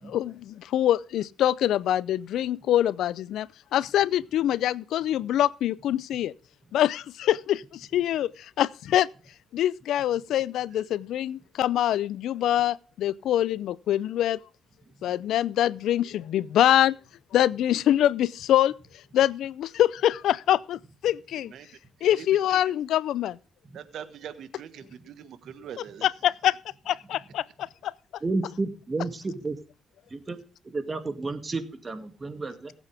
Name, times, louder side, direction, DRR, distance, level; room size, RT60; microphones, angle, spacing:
voice 1, 0.0-6.3 6.7-9.1 9.5-14.4 15.0-17.0 17.3-18.8 19.1-21.5 22.0-23.4 26.0-26.6 26.9-27.9, left 12 dB, 80° left, 0.5 m, -24 dB
voice 2, 21.3-21.7 22.0-22.6 23.7-26.1, right 9 dB, 70° right, 1.4 m, -43 dB
voice 3, 28.2-29.6 30.1-30.4 30.6-32.7, right 3 dB, 25° right, 2.2 m, -31 dB
19.5 x 8.3 x 3.4 m
cardioid pair, 90°, 0 cm